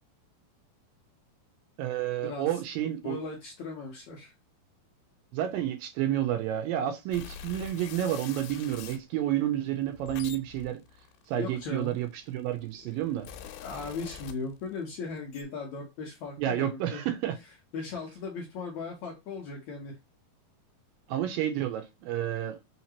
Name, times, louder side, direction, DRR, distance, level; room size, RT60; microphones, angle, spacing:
voice 1, 1.8-3.2 5.3-10.8 11.3-13.3 16.4-17.3 21.1-22.6, right 11 dB, 80° right, 2.2 m, -30 dB
voice 2, 3.0-4.3 11.4-12.0 12.9-13.1 13.6-17.0 17.4-19.9, left 4 dB, 70° left, 1.8 m, -38 dB
sound 1, 7.1-9.0 9.8-12.1 12.8-14.8 15.1-15.4, left 8 dB, 85° left, 2.6 m, -44 dB
5.7 x 2.9 x 2.8 m
omnidirectional pair, 4.4 m